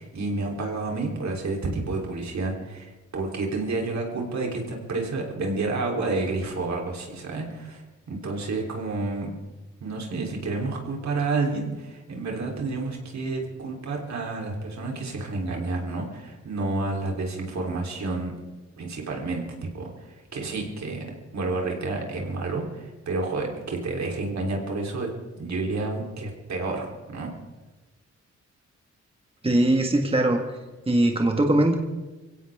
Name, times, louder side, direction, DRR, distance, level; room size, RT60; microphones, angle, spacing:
voice 1, 0.0-9.3 9.8-18.3 18.8-19.4 19.7-21.0 21.3-25.1 25.4-27.3, right 3 dB, 70° right, 0 dB, 3.7 m, -30 dB
voice 2, 29.4-30.4 30.9-31.7, right 1 dB, 20° right, 3 dB, 1.7 m, -20 dB
23.5 x 16.5 x 3.7 m, 1.2 s
cardioid pair, 85°, 29 cm